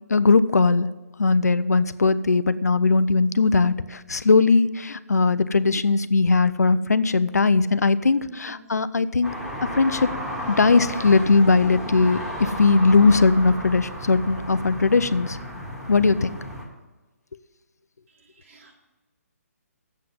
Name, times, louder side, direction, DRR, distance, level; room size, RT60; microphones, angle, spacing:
voice 1, 0.1-0.9 1.2-9.3 9.7-10.1 10.5-15.4 15.9-16.3, left 4 dB, 85° left, 14 dB, 0.5 m, -19 dB
voice 2, 8.3-8.6 18.4-18.7, right 3 dB, 55° right, -1 dB, 2.7 m, -45 dB
sound 1, 9.2-16.6, equal, 10° right, 1.7 m, -34 dB
7.5 x 7.4 x 7.7 m, 1.1 s
figure-of-eight pair, 140°, 8 cm